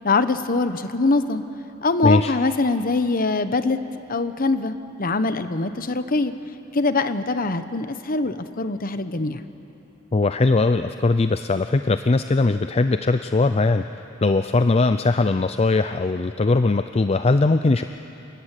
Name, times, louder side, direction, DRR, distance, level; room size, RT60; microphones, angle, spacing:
voice 1, 0.0-1.4 1.8-3.8 4.1-6.3 6.7-9.5, left 3 dB, 45° left, 11 dB, 1.0 m, -23 dB
voice 2, 2.0-2.3 10.1-13.8 14.2-17.8, left 3 dB, 30° left, 10 dB, 0.5 m, -20 dB
28.0 x 16.5 x 9.9 m, 2.9 s
head